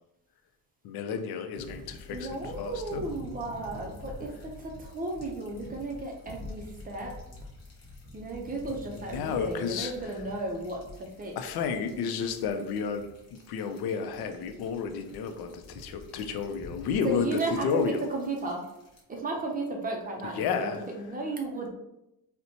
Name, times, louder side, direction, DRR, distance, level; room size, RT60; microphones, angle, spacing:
voice 1, 0.8-3.1 8.9-9.9 11.4-18.1 20.4-20.8, left 6 dB, 75° left, 7 dB, 0.5 m, -32 dB
sound 1, 1.5-19.0, left 2 dB, 40° left, 0.9 m, -47 dB
voice 2, 2.1-7.1 8.1-11.4 17.0-17.8 18.1-18.6 19.1-21.7, right 2 dB, 25° right, 1 dB, 0.4 m, -34 dB
4.2 x 2.1 x 2.7 m, 0.88 s
cardioid pair, 160°, 38 cm